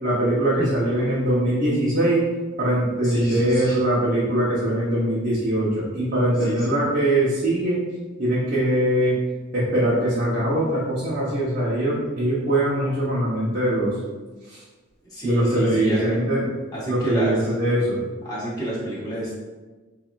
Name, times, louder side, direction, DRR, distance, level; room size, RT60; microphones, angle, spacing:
voice 1, 0.0-2.3 2.6-7.8 8.2-9.2 9.5-14.0 14.5-14.6 15.2-16.4 16.9-18.0, right 1 dB, 40° right, -9 dB, 1.0 m, -22 dB
voice 2, 3.0-3.8 6.4-6.8 15.1-16.2 16.7-17.5 18.2-19.3, right 1 dB, 20° left, -8 dB, 1.4 m, -28 dB
7.4 x 2.8 x 2.5 m, 1.3 s
head